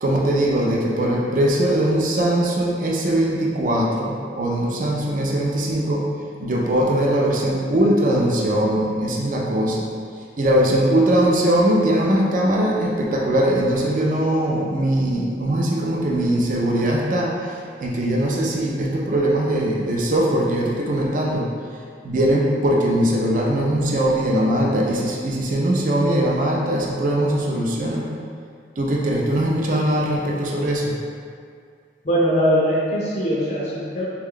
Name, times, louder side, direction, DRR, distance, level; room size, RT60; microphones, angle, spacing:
voice 1, 0.0-6.1 6.4-9.9 10.4-21.5 22.0-28.1 28.8-31.0, right 1 dB, 45° right, -2 dB, 0.4 m, -21 dB
voice 2, 32.0-34.1, equal, 40° left, -6 dB, 0.4 m, -21 dB
3.5 x 2.3 x 3.6 m, 2.2 s
head